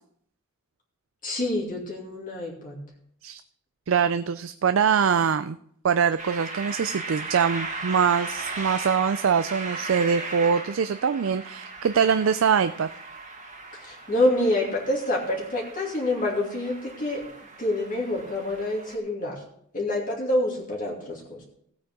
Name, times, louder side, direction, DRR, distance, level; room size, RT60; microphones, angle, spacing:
voice 1, 1.2-2.8 13.8-17.2 17.6-19.4 19.7-21.4, left 1 dB, 40° left, -3 dB, 2.6 m, -27 dB
voice 2, 3.9-5.6 5.8-12.9, right 6 dB, 65° right, 11 dB, 0.4 m, -23 dB
sound 1, 6.2-19.0, right 3 dB, 35° right, 1.9 m, -37 dB
16.0 x 8.6 x 3.7 m, 0.68 s
head